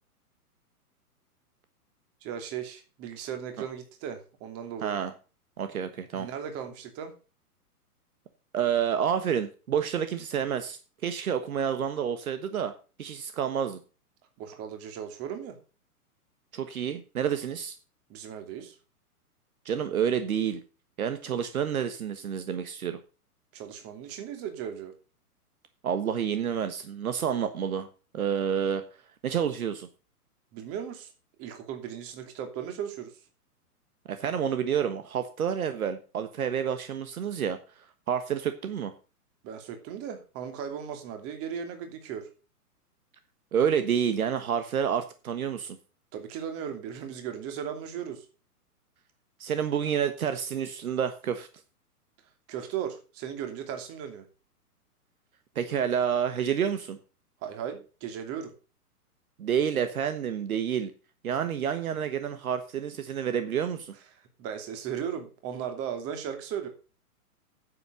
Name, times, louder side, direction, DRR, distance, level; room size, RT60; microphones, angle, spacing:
voice 1, 2.2-5.0 6.1-7.1 14.4-15.6 18.1-18.7 23.5-24.9 30.5-31.1 31.4-33.1 39.4-42.3 46.1-48.2 52.5-54.3 57.4-58.5 64.4-66.7, right 8 dB, 30° right, 6 dB, 2.8 m, -37 dB
voice 2, 4.8-5.1 5.6-6.3 8.5-12.7 13.0-13.8 16.5-17.7 19.6-20.6 21.0-23.0 25.8-27.9 28.1-28.8 29.2-29.9 34.1-37.6 38.1-38.9 43.5-45.8 49.4-51.5 55.5-57.0 59.4-60.9 61.2-63.9, right 8 dB, 65° right, 10 dB, 1.4 m, -29 dB
9.6 x 8.0 x 6.5 m, 0.35 s
hypercardioid pair, 120°, 46 cm